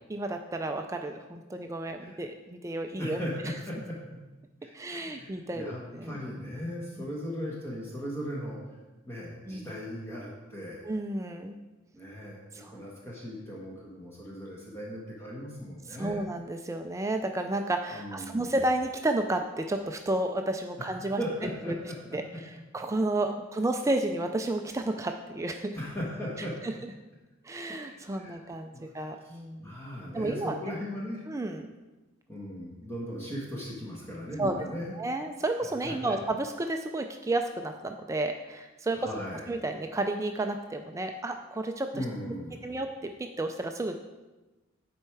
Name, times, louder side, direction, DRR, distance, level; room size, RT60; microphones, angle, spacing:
voice 1, 0.1-3.2 3.4-3.5 4.7-6.1 7.0-7.1 9.5-9.7 10.8-11.6 12.5-12.8 15.9-21.2 21.7-21.8 22.1-25.8 26.6-26.7 27.4-29.7 30.1-30.6 31.3-31.7 34.4-34.7 34.9-39.1 39.5-42.4 42.6-44.0, right 2 dB, 15° right, 5 dB, 0.3 m, -32 dB
voice 2, 3.0-4.0 4.6-8.6 9.0-10.9 11.9-16.2 17.9-18.5 20.8-22.0 25.7-26.5 27.9-28.4 28.7-28.9 29.2-31.2 32.3-34.9 35.8-36.1 38.9-39.5 41.9-42.7, equal, 10° left, -5 dB, 1.3 m, -38 dB
9.9 x 4.5 x 4.6 m, 1.1 s
head